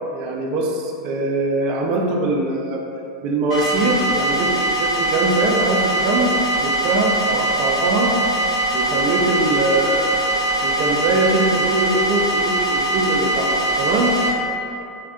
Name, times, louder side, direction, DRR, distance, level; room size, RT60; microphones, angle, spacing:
voice 1, 0.1-2.8 3.2-8.2 8.7-10.2 10.6-14.2, right 2 dB, 45° right, 1 dB, 0.3 m, -22 dB
sound 1, 3.5-14.3, right 1 dB, 70° left, 1.1 m, -21 dB
2.5 x 2.1 x 2.3 m, 2.7 s
hypercardioid pair, 95°, 2 cm